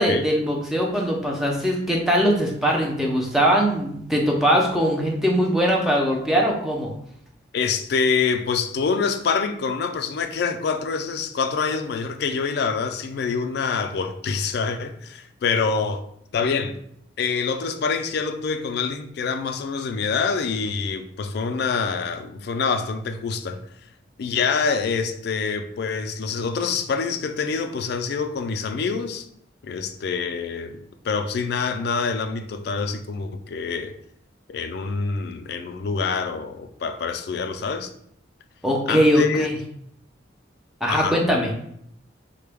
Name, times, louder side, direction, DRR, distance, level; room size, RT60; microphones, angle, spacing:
voice 1, 0.0-6.9 38.6-39.6 40.8-41.5, equal, ahead, 0.5 m, -21 dB
voice 2, 7.5-16.0 16.3-16.8 17.2-23.6 24.2-29.2 29.6-33.9 34.5-37.9 38.9-39.5 40.9-41.2, left 5 dB, 55° left, 0.3 m, -26 dB
3.8 x 2.2 x 3.4 m
head